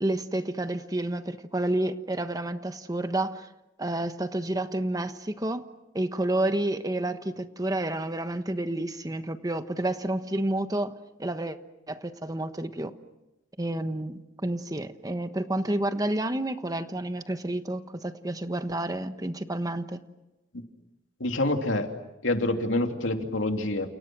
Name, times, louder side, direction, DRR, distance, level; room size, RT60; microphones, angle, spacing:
voice 1, 0.0-3.5 3.8-5.7 5.9-10.9 11.2-11.6 11.9-12.9 13.6-20.0, right 1 dB, 20° right, 9 dB, 1.2 m, -30 dB
voice 2, 21.2-21.9 22.2-23.9, left 2 dB, 90° left, 4 dB, 2.9 m, -26 dB
30.0 x 29.0 x 6.2 m, 0.95 s
head